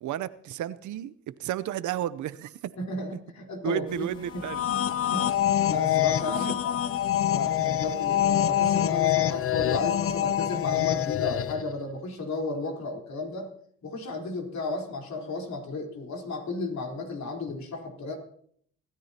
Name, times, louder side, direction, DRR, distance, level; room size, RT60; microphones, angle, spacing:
voice 1, 0.0-1.1 1.4-2.5 3.6-4.6, right 11 dB, 75° right, 16 dB, 0.8 m, -32 dB
voice 2, 2.8-4.5 5.1-6.8 7.3-13.5 13.8-18.2, left 3 dB, 65° left, 0 dB, 4.1 m, -34 dB
sound 1, 3.9-11.6, left 1 dB, 15° left, 2.2 m, -54 dB
sound 2, 4.3-11.7, left 11 dB, 45° left, 0.6 m, -25 dB
24.5 x 13.5 x 2.9 m, 0.62 s
cardioid pair, 90°, 30 cm